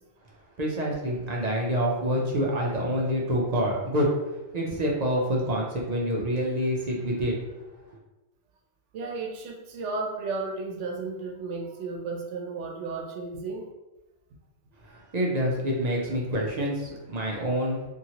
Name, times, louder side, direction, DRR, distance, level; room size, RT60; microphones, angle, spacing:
voice 1, 0.6-4.1 4.5-7.3 14.8-17.9, equal, 50° right, -2 dB, 0.5 m, -27 dB
voice 2, 8.9-13.7, right 3 dB, 90° right, 2 dB, 0.9 m, -34 dB
2.8 x 2.7 x 2.8 m, 1.0 s
omnidirectional pair, 1.2 m